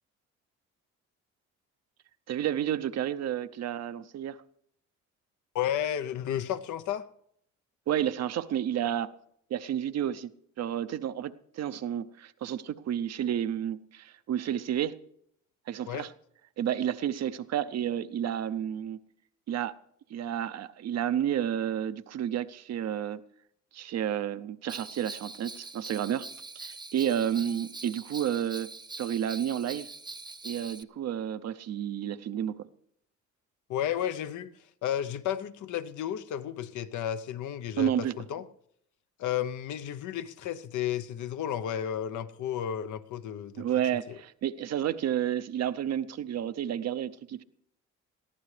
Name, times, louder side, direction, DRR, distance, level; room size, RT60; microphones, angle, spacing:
voice 1, 2.3-4.4 7.9-9.1 9.5-10.3 10.6-15.0 15.7-16.1 16.6-19.0 19.5-19.8 20.1-23.2 23.7-26.3 26.5-28.7 29.0-29.9 30.4-32.7 37.8-38.2 43.6-47.4, right 10 dB, 60° right, 0.6 m, -31 dB
voice 2, 5.5-7.1 15.9-16.1 33.7-34.5 34.8-38.4 39.2-43.7 44.1-44.2, left 10 dB, 75° left, 0.7 m, -32 dB
Bell, 24.7-30.8, right 3 dB, 15° right, 0.7 m, -43 dB
21.0 x 14.0 x 3.3 m
cardioid pair, 90°, 30 cm